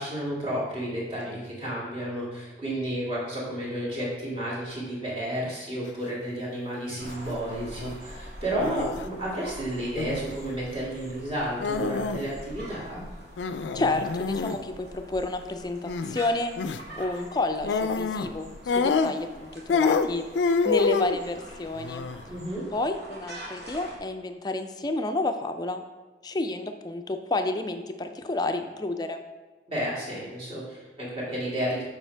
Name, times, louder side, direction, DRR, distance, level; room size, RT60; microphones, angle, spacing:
voice 1, 0.0-13.1 22.3-22.6 29.7-31.8, right 1 dB, 35° right, -6 dB, 2.1 m, -32 dB
sound 1, 6.9-7.1 7.5-8.0 8.6-9.0 10.0-10.4 11.6-12.3 12.6-12.7 13.4-14.6 15.8-16.2 16.6-16.8 17.6-18.3 18.7-19.4 19.7-21.2 21.7-22.2, left 5 dB, 90° left, 0.3 m, -27 dB
sound 2, 7.0-24.0, equal, 65° right, 1.5 m, -44 dB
voice 2, 13.7-16.5 16.9-20.2 20.6-22.1 22.7-25.8 26.2-29.2, left 2 dB, 25° left, 7 dB, 0.4 m, -30 dB
7.3 x 5.1 x 3.3 m, 1.3 s
head